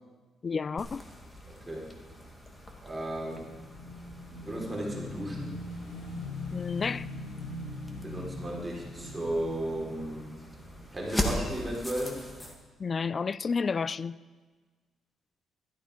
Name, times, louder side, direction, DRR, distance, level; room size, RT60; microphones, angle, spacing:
voice 1, 0.4-1.0 6.5-7.1 12.8-14.2, left 5 dB, 40° left, 0.4 m, -30 dB
sound 1, 0.8-12.5, left 1 dB, 15° left, 2.3 m, -41 dB
voice 2, 1.5-1.9 2.8-3.5 4.3-5.6 8.0-10.3 10.9-12.2, right 1 dB, 15° right, 4.5 m, -35 dB
Motorcycle / Engine, 2.9-11.4, left 2 dB, 65° left, 6.0 m, -42 dB
16.5 x 12.5 x 5.2 m
cardioid pair, 90°, 0 cm